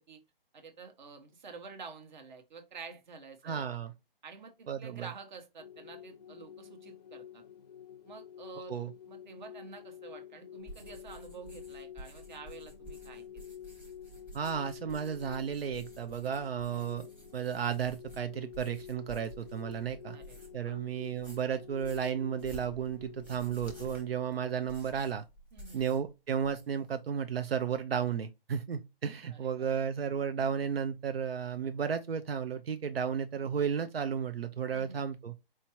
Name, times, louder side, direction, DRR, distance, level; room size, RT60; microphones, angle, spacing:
voice 1, 0.5-3.8 4.2-7.4 8.0-8.7 9.1-13.5 16.7-16.8 20.1-20.8 25.5-25.8 29.3-29.7 34.7-35.0, right 5 dB, 50° right, 1.1 m, -49 dB
voice 2, 3.4-3.9 4.7-5.1 8.7-8.9 14.3-17.1 17.3-20.2 20.5-25.2 25.7-35.3, right 7 dB, 85° right, 0.6 m, -33 dB
sound 1, 5.6-24.7, left 9 dB, 45° left, 0.5 m, -49 dB
sound 2, 10.6-20.7 21.0-26.1 26.4-26.9, right 1 dB, 5° right, 0.9 m, -52 dB
4.6 x 2.8 x 2.9 m
hypercardioid pair, 155°, 29 cm